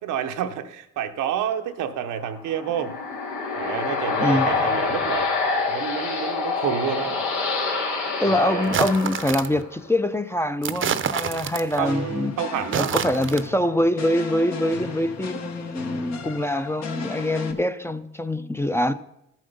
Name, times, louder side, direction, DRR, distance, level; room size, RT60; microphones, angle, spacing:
voice 1, 0.0-3.0 3.5-5.3 5.7-7.2 8.2-8.8 11.8-12.9, right 9 dB, 90° right, 0.9 m, -29 dB
sound 1, 2.3-9.9, left 4 dB, 85° left, 2.3 m, -26 dB
voice 2, 8.2-12.3 12.7-18.9, left 1 dB, 10° left, 0.5 m, -24 dB
sound 2, 8.6-9.6 10.6-11.9 12.6-13.5, right 7 dB, 40° right, 0.7 m, -27 dB
sound 3, 11.8-17.5, left 5 dB, 60° left, 1.3 m, -36 dB
13.0 x 7.4 x 5.3 m
cardioid pair, 90°, 30 cm